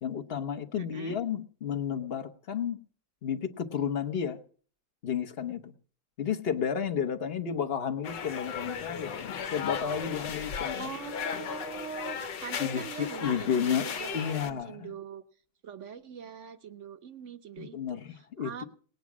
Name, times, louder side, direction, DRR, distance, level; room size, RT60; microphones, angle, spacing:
voice 1, 0.0-2.8 3.2-4.4 5.0-5.7 6.2-10.9 11.3-11.4 12.6-13.9 14.1-14.9 17.6-18.6, left 8 dB, 40° left, 7 dB, 1.0 m, -32 dB
voice 2, 0.7-1.2 10.8-15.2 15.6-18.6, right 7 dB, 50° right, 9 dB, 1.1 m, -43 dB
sound 1, 8.0-14.5, left 7 dB, 75° left, 1.6 m, -36 dB
19.0 x 9.5 x 6.1 m, 0.44 s
omnidirectional pair, 2.0 m